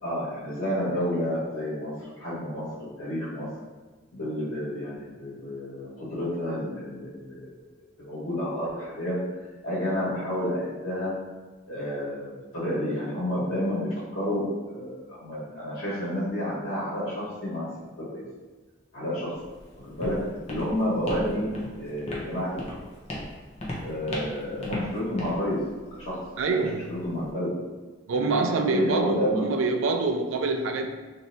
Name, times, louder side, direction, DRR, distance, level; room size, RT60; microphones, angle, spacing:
voice 1, 0.0-3.5 4.1-7.5 8.0-9.2 9.6-11.1 11.7-17.7 18.0-18.2 18.9-19.3 19.8-22.9 23.8-25.6 25.9-26.2 26.5-26.6 26.9-27.5 28.1-29.4, equal, 85° left, -11 dB, 1.2 m, -30 dB
Walk footsteps, 19.3-27.3, left 1 dB, 30° left, 0.6 m, -39 dB
voice 2, 26.4-26.8 28.1-30.9, right 3 dB, 75° right, 5 dB, 0.4 m, -26 dB
3.1 x 2.7 x 2.6 m, 1.3 s
head